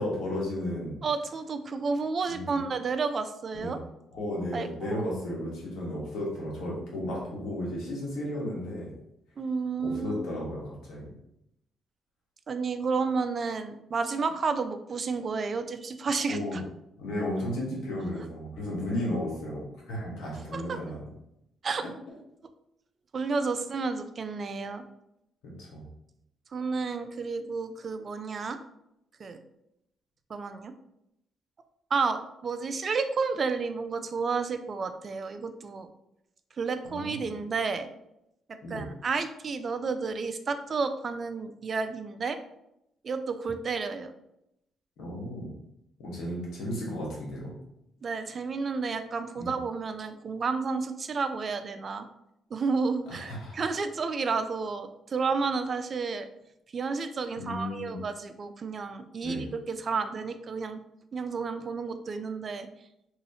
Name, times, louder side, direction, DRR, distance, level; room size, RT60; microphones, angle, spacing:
voice 1, 0.0-1.0 2.3-2.6 3.5-3.8 4.1-8.9 9.8-11.1 16.3-16.6 17.0-21.0 25.4-25.8 36.8-37.2 38.6-38.9 45.0-45.5 46.0-47.6 49.4-49.5 53.1-53.6 57.4-58.0 59.2-59.4, left 1 dB, 85° left, -4 dB, 1.3 m, -34 dB
voice 2, 1.0-3.8 4.5-5.0 9.4-10.4 12.5-16.6 20.5-20.6 21.6-21.8 23.1-24.8 26.5-28.6 29.2-29.4 30.3-30.7 31.9-35.9 36.6-37.9 38.5-42.4 43.0-44.1 48.0-52.1 52.5-56.3 56.7-60.8 61.1-62.7, right 4 dB, 45° right, 9 dB, 0.3 m, -31 dB
3.1 x 2.7 x 2.7 m, 0.82 s
cardioid pair, 90°, 0 cm